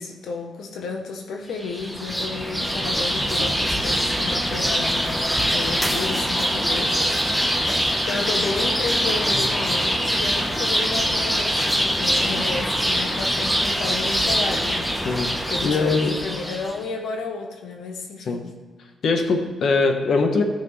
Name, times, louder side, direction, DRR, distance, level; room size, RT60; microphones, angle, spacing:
voice 1, 0.0-7.6 8.1-15.2 15.5-18.5, left 4 dB, 80° left, 3 dB, 0.9 m, -32 dB
sound 1, 1.6-16.7, equal, 5° left, 0.9 m, -23 dB
voice 2, 15.6-16.1 18.3-18.4 19.0-20.4, left 4 dB, 55° left, 4 dB, 1.0 m, -21 dB
15.0 x 5.8 x 3.2 m, 1.4 s
wide cardioid pair, 165°, 0 cm